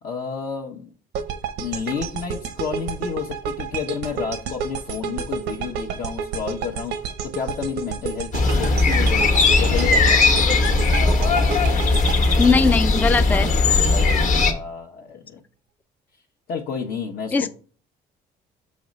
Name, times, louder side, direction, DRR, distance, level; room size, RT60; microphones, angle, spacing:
voice 1, 0.0-0.9 1.6-7.0 7.2-9.3 9.6-10.4 13.9-15.4 16.5-17.5, left 6 dB, 65° left, 0 dB, 0.9 m, -30 dB
sound 1, 1.1-13.3, right 7 dB, 90° right, 0.8 m, -31 dB
sound 2, 8.3-14.5, left 3 dB, 50° left, 1.2 m, -18 dB
voice 2, 12.4-13.5 17.3-17.5, left 4 dB, 10° left, 10 dB, 0.3 m, -19 dB
6.2 x 3.1 x 5.1 m, 0.40 s
cardioid pair, 110°, 17 cm